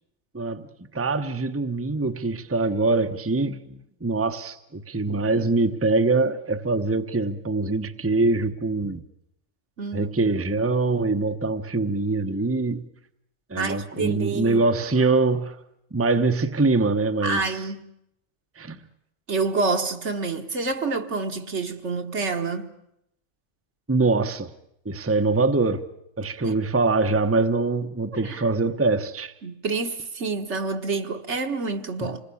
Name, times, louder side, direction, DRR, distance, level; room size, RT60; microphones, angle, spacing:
voice 1, 0.3-0.7 0.9-9.0 9.9-12.9 13.5-15.6 15.9-17.4 18.6-18.8 23.9-24.5 24.8-25.8 26.2-29.3, right 3 dB, 15° right, 0.9 m, -23 dB
voice 2, 9.8-10.3 13.6-14.6 17.2-17.8 19.3-22.7 26.4-26.6 28.1-28.4 29.4-32.2, right 4 dB, 70° right, 1.8 m, -28 dB
27.0 x 20.0 x 8.4 m
omnidirectional pair, 1.3 m